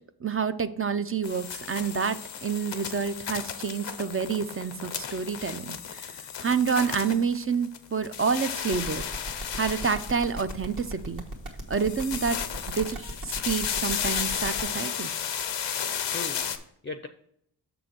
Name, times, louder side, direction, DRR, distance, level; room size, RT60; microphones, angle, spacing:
voice 1, 0.2-9.0 9.6-11.2 11.7-12.4 12.7-15.1, right 6 dB, 35° right, 12 dB, 0.5 m, -28 dB
sound 1, 1.2-7.8 8.0-10.9 11.7-16.6, left 8 dB, 90° left, 0.7 m, -34 dB
sound 2, 8.7-14.6, right 1 dB, 50° right, 1.8 m, -36 dB
voice 2, 15.8-17.1, left 4 dB, 30° left, 8 dB, 0.5 m, -40 dB
6.6 x 3.9 x 5.9 m, 0.71 s
cardioid pair, 55°, 41 cm